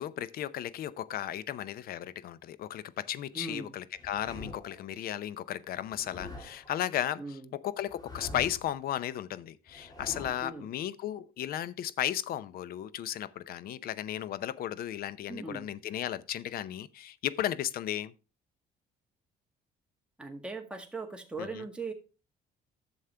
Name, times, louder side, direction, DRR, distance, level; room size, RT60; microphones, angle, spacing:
voice 1, 0.0-7.2 7.5-18.1 21.4-21.6, left 11 dB, 60° left, 0.7 m, -35 dB
voice 2, 3.3-3.8 7.2-7.5 10.4-10.7 15.3-15.7 20.2-21.9, right 3 dB, 5° right, 1.8 m, -39 dB
sound 1, 3.9-4.8 5.9-6.7 7.9-8.7 9.7-10.6, left 2 dB, 25° left, 2.2 m, -45 dB
11.5 x 7.2 x 3.4 m
cardioid pair, 110°, 17 cm